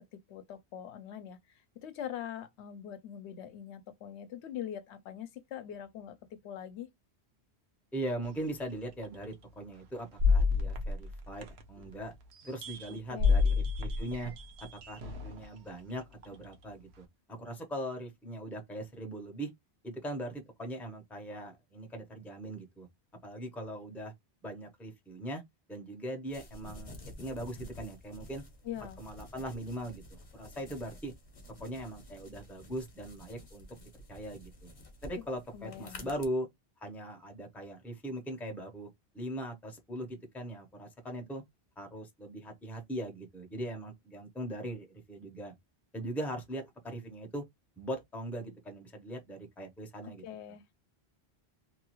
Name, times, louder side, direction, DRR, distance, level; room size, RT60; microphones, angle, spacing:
voice 1, 0.1-6.9 12.9-13.4 28.6-29.0 35.2-35.3 35.5-36.1 50.0-50.6, left 10 dB, 80° left, 0.9 m, -43 dB
voice 2, 7.9-12.1 12.4-14.3 14.7-19.5 19.8-22.9 23.2-24.1 24.4-25.4 25.7-28.4 29.0-31.1 31.6-34.7 35.0-36.5 36.8-38.9 39.1-41.4 41.8-45.5 45.9-47.4 47.8-50.2, right 1 dB, ahead, 0.6 m, -40 dB
sound 1, 8.2-8.3 9.0-9.2 10.2-11.9 12.3-15.5 16.2-16.4, left 4 dB, 75° right, 0.9 m, -29 dB
sound 2, 26.3-36.3, left 1 dB, 35° left, 0.7 m, -50 dB
2.9 x 2.3 x 2.9 m
omnidirectional pair, 1.1 m